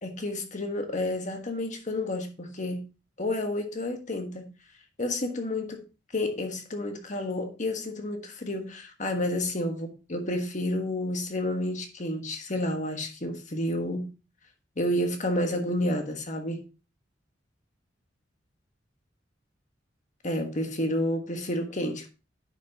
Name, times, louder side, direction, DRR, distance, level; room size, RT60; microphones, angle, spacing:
voice 1, 0.0-2.9 3.2-4.5 5.0-5.8 6.1-14.1 14.8-16.6 20.2-22.1, left 1 dB, 40° left, 1.4 m, -30 dB
9.7 x 5.7 x 2.9 m
head